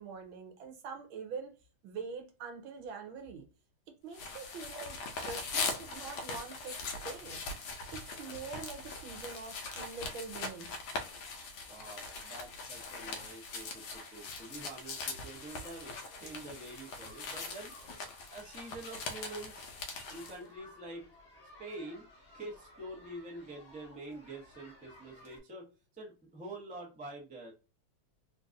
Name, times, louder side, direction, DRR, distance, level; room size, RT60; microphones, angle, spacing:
voice 1, 0.0-1.5 1.8-3.4 4.0-7.4 7.9-10.8, right 5 dB, 70° right, 1.5 m, -44 dB
sound 1, 4.1-20.4, left 3 dB, 70° left, 1.4 m, -41 dB
voice 2, 11.7-17.7 18.3-19.7 20.1-21.1 21.6-22.1 22.3-27.5, right 2 dB, 10° right, 0.3 m, -46 dB
sound 2, 15.3-25.4, left 1 dB, 45° left, 0.8 m, -57 dB
3.8 x 2.5 x 2.5 m
omnidirectional pair, 2.4 m